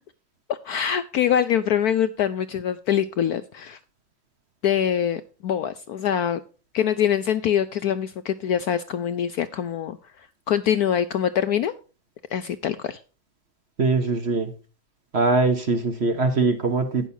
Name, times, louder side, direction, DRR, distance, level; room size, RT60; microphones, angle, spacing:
voice 1, 0.5-3.8 4.6-6.4 6.7-11.7 12.3-13.0, left 9 dB, 70° left, 12 dB, 0.9 m, -24 dB
voice 2, 13.8-14.5 15.1-17.1, right 3 dB, 40° right, 7 dB, 1.2 m, -22 dB
18.0 x 6.3 x 2.7 m, 0.34 s
omnidirectional pair, 2.1 m